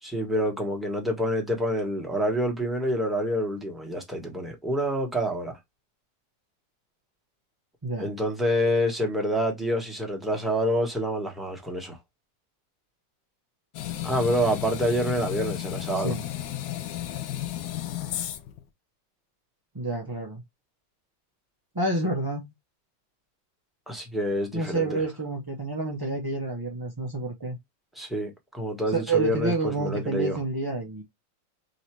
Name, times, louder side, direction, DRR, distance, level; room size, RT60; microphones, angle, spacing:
voice 1, 0.0-5.6 8.0-12.0 14.0-16.1 23.9-25.0 28.0-30.4, equal, ahead, 1.1 m, -27 dB
sound 1, 13.7-18.6, left 12 dB, 80° left, 1.4 m, -33 dB
voice 2, 19.7-20.4 21.7-22.5 24.5-27.6 28.9-31.0, right 3 dB, 25° right, 0.5 m, -29 dB
4.0 x 2.8 x 4.6 m
omnidirectional pair, 2.0 m